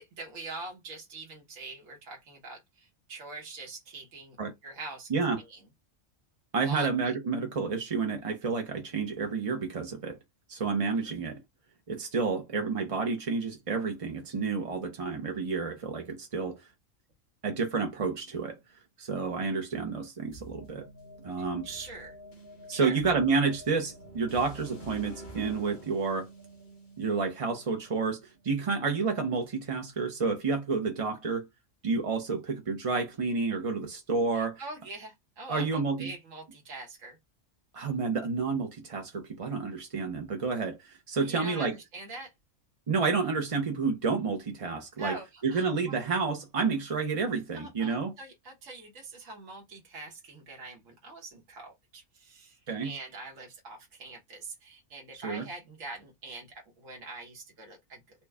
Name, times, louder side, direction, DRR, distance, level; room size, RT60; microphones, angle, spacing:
voice 1, 0.0-4.4 4.6-5.6 6.6-7.1 21.6-22.2 22.7-23.0 34.3-37.2 41.2-42.3 45.0-45.9 47.5-56.5 56.8-58.0, right 3 dB, 80° right, 1.5 m, -43 dB
voice 2, 6.5-10.2 10.5-11.4 11.9-16.6 17.4-18.6 19.0-20.9 21.2-21.7 22.7-26.3 27.0-31.5 31.8-34.6 35.5-36.1 37.7-41.7 42.9-45.2 45.4-48.1 52.7-52.9 55.1-55.5, right 4 dB, 40° right, 0.5 m, -30 dB
sound 1, 20.3-28.2, right 1 dB, 40° left, 1.2 m, -48 dB
4.3 x 2.2 x 3.3 m
omnidirectional pair, 1.3 m